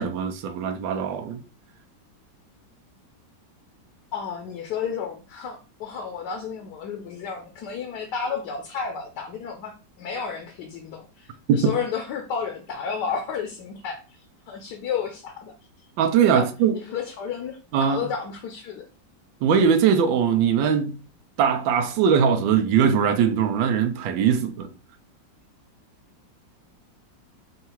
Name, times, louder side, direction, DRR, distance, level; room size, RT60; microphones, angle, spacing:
voice 1, 0.0-1.4 11.5-11.7 16.0-16.8 17.7-18.0 19.4-21.0 21.4-24.7, right 7 dB, 90° right, 1.3 m, -21 dB
voice 2, 4.1-15.5 16.3-16.5 16.7-18.9, left 6 dB, 70° left, 1.2 m, -32 dB
3.7 x 2.4 x 4.3 m
omnidirectional pair, 2.0 m